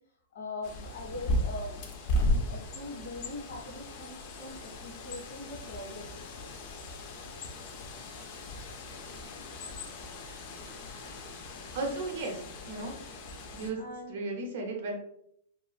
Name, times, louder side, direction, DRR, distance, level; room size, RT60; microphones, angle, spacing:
voice 1, 0.3-1.8 2.1-6.4 7.1-7.8 12.9-13.0 13.8-14.2, left 2 dB, 80° left, 0 dB, 1.0 m, -42 dB
Bird, 0.6-13.7, left 1 dB, 35° left, 0.4 m, -36 dB
voice 2, 11.7-12.9 13.5-13.8 14.1-15.0, right 3 dB, 55° right, 2 dB, 0.7 m, -35 dB
2.9 x 2.4 x 2.3 m, 0.73 s
supercardioid pair, 165°, 0 cm